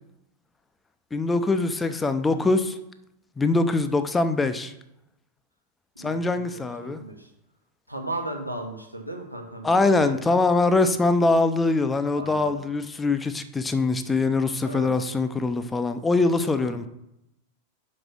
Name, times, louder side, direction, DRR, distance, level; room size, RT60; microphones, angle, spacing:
voice 1, 1.1-2.8 3.4-4.7 6.0-7.0 9.6-16.9, left 3 dB, 10° left, 0.6 m, -23 dB
voice 2, 6.0-7.3 7.9-10.2 12.1-12.6 14.6-14.9 16.6-16.8, right 2 dB, 90° right, 1.2 m, -36 dB
5.8 x 5.3 x 6.1 m
figure-of-eight pair, 90°, 0 cm